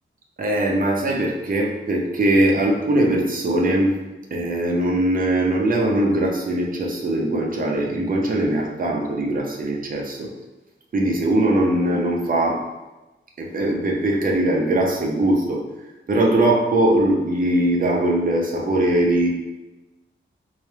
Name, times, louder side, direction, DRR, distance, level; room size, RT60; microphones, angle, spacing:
voice 1, 0.4-4.0 4.3-10.3 10.9-12.7 13.4-15.6 16.1-19.3, right 1 dB, 45° right, -1 dB, 0.7 m, -21 dB
4.1 x 2.3 x 3.3 m, 1.1 s
wide cardioid pair, 130°, 20 cm